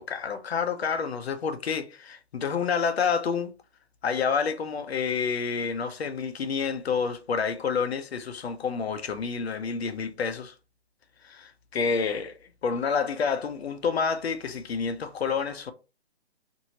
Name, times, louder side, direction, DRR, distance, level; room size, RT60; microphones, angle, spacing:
voice 1, 0.0-3.5 4.0-10.5 11.2-15.7, left 6 dB, 70° left, 0.6 m, -29 dB
2.9 x 2.7 x 2.7 m
hypercardioid pair, 175°, 33 cm